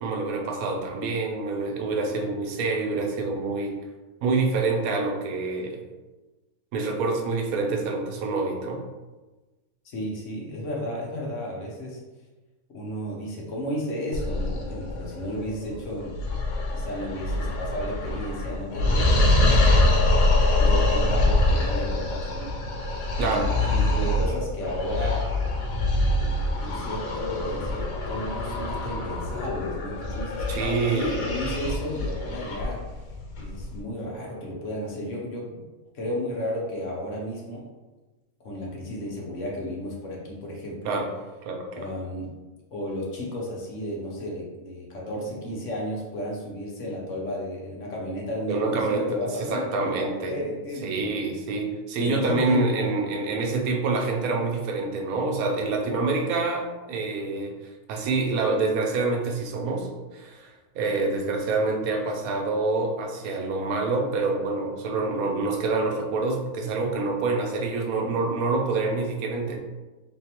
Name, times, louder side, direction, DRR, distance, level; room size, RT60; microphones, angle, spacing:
voice 1, 0.0-3.7 4.2-5.8 6.7-8.8 23.2-23.5 30.5-31.2 40.8-41.1 41.4-41.9 48.5-50.4 50.8-57.6 57.9-69.6, right 3 dB, 80° right, 2 dB, 1.1 m, -26 dB
voice 2, 9.8-12.0 12.7-16.2 16.7-22.5 23.2-25.2 26.2-33.0 33.4-35.6 35.9-37.6 38.4-41.0 41.7-42.3 42.7-51.1 51.5-51.7 52.0-52.9, equal, 60° left, -2 dB, 1.2 m, -33 dB
sound 1, 14.1-33.8, left 2 dB, 80° left, 1.2 m, -25 dB
3.7 x 3.6 x 2.9 m, 1.2 s
omnidirectional pair, 1.5 m